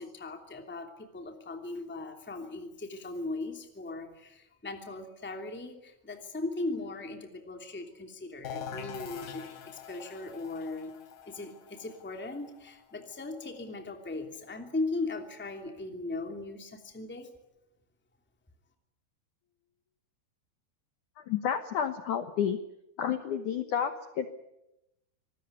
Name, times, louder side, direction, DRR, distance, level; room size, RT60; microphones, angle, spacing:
voice 1, 0.0-11.0 11.2-17.3, left 2 dB, 5° left, 4 dB, 1.4 m, -38 dB
sound 1, 8.4-14.0, left 7 dB, 65° left, 4.6 m, -44 dB
voice 2, 21.2-22.6 23.0-24.3, left 8 dB, 85° left, 8 dB, 1.7 m, -30 dB
26.0 x 20.0 x 9.5 m, 0.89 s
omnidirectional pair, 5.4 m